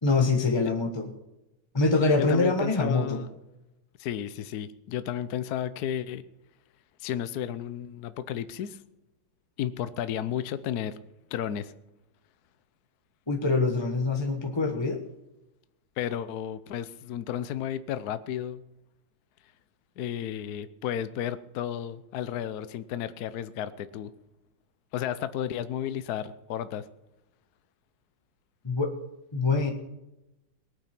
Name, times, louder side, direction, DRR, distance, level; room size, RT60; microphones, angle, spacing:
voice 1, 0.0-1.1 1.7-3.2 13.3-15.0 28.6-28.9 29.3-29.7, left 3 dB, 15° left, 4 dB, 0.9 m, -24 dB
voice 2, 2.2-3.3 4.0-6.2 7.0-8.8 9.6-11.0 11.3-11.7 16.0-18.6 20.0-24.1 24.9-26.9, left 10 dB, 65° left, 13 dB, 0.9 m, -33 dB
19.5 x 9.1 x 5.9 m, 0.94 s
omnidirectional pair, 2.4 m